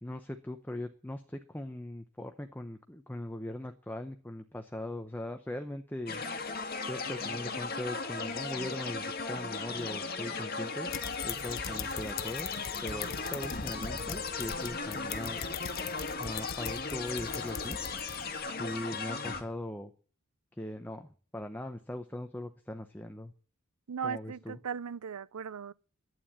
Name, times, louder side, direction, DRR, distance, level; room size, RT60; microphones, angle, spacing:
voice 1, 0.0-6.2 6.9-10.9 11.2-12.5 12.8-15.4 16.2-17.8 18.5-19.9 20.6-23.3 24.0-24.6, left 1 dB, 10° left, 0.8 m, -40 dB
sound 1, 6.1-19.4, left 4 dB, 40° left, 1.7 m, -37 dB
sound 2, 10.9-18.5, left 7 dB, 60° left, 1.0 m, -42 dB
voice 2, 23.9-25.7, right 7 dB, 85° right, 0.6 m, -37 dB
12.0 x 9.3 x 8.8 m
head